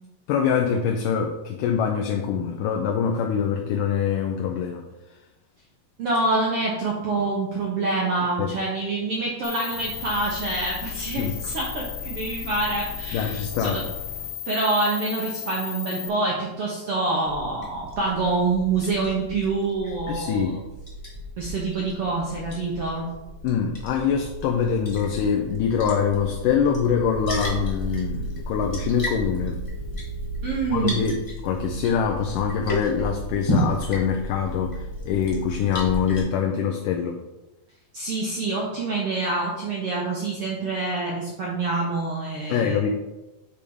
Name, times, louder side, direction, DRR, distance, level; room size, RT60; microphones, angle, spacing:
voice 1, 0.3-4.8 8.4-8.5 10.9-11.3 13.1-13.8 20.1-20.6 23.4-29.6 30.7-31.2 31.4-37.2 42.5-42.9, left 7 dB, 80° left, 2 dB, 2.0 m, -24 dB
voice 2, 6.0-13.8 14.5-20.6 21.4-23.1 30.4-31.0 37.9-42.9, right 3 dB, 75° right, -3 dB, 1.3 m, -26 dB
sound 1, 9.4-16.1, left 9 dB, 60° left, 2.2 m, -34 dB
Liquid, 17.3-36.2, right 1 dB, 20° left, 0.8 m, -33 dB
8.5 x 3.5 x 5.3 m, 1.0 s
omnidirectional pair, 4.1 m